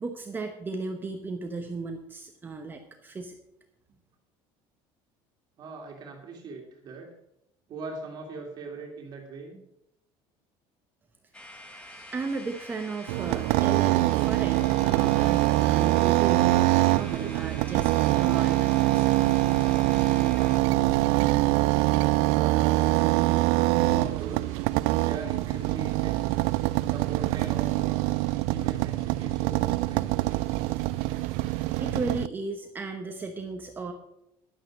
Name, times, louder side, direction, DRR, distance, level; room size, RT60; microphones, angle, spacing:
voice 1, 0.0-3.4 11.7-19.1 22.1-22.2 31.8-33.9, right 3 dB, 20° right, 4 dB, 1.0 m, -35 dB
voice 2, 5.6-7.1 7.7-9.6 22.3-23.3 23.8-24.5 25.0-26.4 26.9-28.1 28.5-30.3, right 3 dB, 40° right, 1 dB, 2.2 m, -40 dB
sound 1, 11.3-20.6, equal, 10° left, 1.7 m, -46 dB
sound 2, 11.9-31.8, left 4 dB, 85° left, 3.4 m, -60 dB
sound 3, 13.1-32.3, right 19 dB, 75° right, 0.4 m, -24 dB
11.5 x 9.2 x 6.3 m, 0.82 s
cardioid pair, 160°, 11 cm